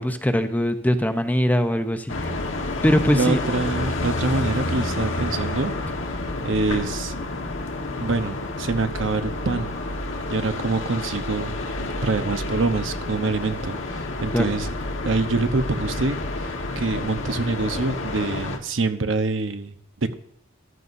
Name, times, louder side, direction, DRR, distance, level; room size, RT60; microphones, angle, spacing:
voice 1, 0.0-2.1 2.8-3.4 14.3-14.5, equal, 10° left, 7 dB, 0.8 m, -21 dB
sound 1, 2.1-18.6, left 2 dB, 80° left, 1.4 m, -29 dB
voice 2, 3.1-5.7 6.4-7.1 8.0-9.7 10.3-14.7 15.0-20.1, right 3 dB, 70° right, 8 dB, 0.9 m, -25 dB
14.0 x 12.5 x 2.7 m, 0.70 s
head